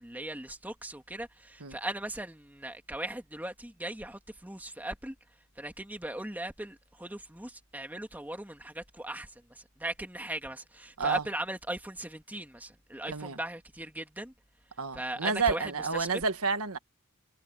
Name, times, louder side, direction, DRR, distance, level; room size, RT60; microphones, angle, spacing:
voice 1, 0.0-5.1 5.6-14.3 14.9-16.1, right 1 dB, 10° right, 2.1 m, -38 dB
voice 2, 13.1-13.4 14.8-16.8, right 4 dB, 90° right, 1.6 m, -30 dB
head